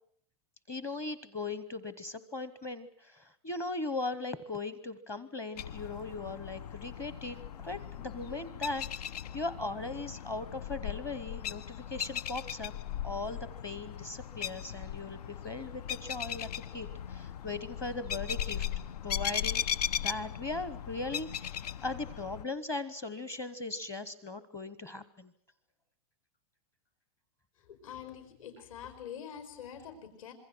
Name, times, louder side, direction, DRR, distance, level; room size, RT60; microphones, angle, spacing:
voice 1, 0.7-12.7 13.0-18.6 19.0-25.3, left 3 dB, 15° left, 15 dB, 0.9 m, -39 dB
sound 1, 5.6-22.4, left 9 dB, 85° left, 1.0 m, -38 dB
voice 2, 27.7-30.3, left 8 dB, 60° left, 9 dB, 5.6 m, -45 dB
26.5 x 22.5 x 6.1 m, 0.66 s
supercardioid pair, 180°, 20 cm